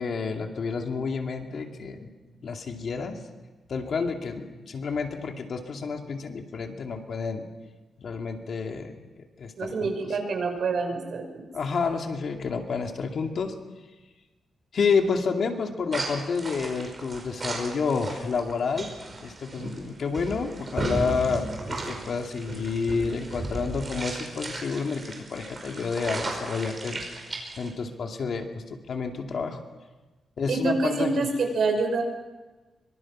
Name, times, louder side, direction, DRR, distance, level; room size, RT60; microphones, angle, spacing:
voice 1, 0.0-2.1 2.4-3.2 3.7-7.5 8.0-10.1 11.5-13.6 14.7-18.9 19.2-27.0 27.6-29.6 30.4-31.3, left 5 dB, 55° left, 3 dB, 2.4 m, -29 dB
voice 2, 9.6-11.4 30.5-32.0, right 3 dB, 60° right, 4 dB, 5.7 m, -26 dB
sound 1, 15.9-27.7, right 2 dB, 30° right, 5.3 m, -35 dB
25.0 x 24.0 x 6.1 m, 1.2 s
wide cardioid pair, 155°, 0 cm